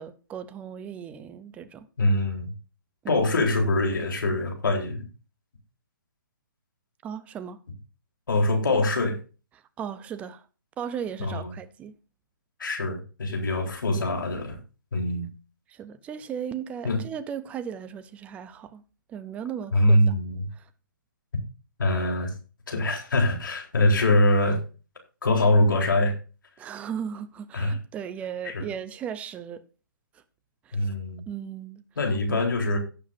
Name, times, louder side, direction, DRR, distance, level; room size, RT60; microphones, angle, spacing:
voice 1, 0.0-1.9 3.0-3.3 7.0-7.6 9.5-10.5 10.8-12.0 15.7-18.8 19.1-20.1 20.5-20.7 26.6-29.6 30.1-30.2 30.6-30.9 31.3-31.8 32.3-32.4, right 8 dB, 10° right, 0.6 m, -36 dB
voice 2, 2.0-2.5 3.1-5.0 8.3-9.2 11.2-11.5 12.6-14.6 14.9-15.3 16.8-17.0 19.7-20.4 21.8-22.3 22.7-24.6 25.2-26.1 27.5-27.8 28.4-28.6 30.7-31.2 32.0-32.8, left 1 dB, 75° left, 4.0 m, -23 dB
17.0 x 7.3 x 2.7 m
hypercardioid pair, 145°, 11 cm